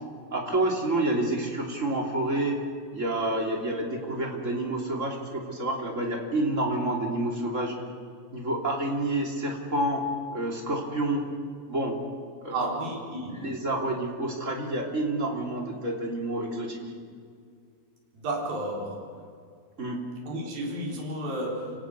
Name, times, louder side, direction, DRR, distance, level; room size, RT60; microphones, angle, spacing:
voice 1, 0.3-2.6 2.9-7.7 8.3-10.0 10.3-11.2 11.7-12.0 12.4-12.6 13.3-16.8 19.8-20.0, right 1 dB, 20° right, 1 dB, 2.7 m, -28 dB
voice 2, 12.5-13.5 18.1-19.1 20.2-21.8, right 1 dB, 70° right, -1 dB, 5.7 m, -32 dB
30.0 x 17.5 x 6.6 m, 2.2 s
omnidirectional pair, 4.5 m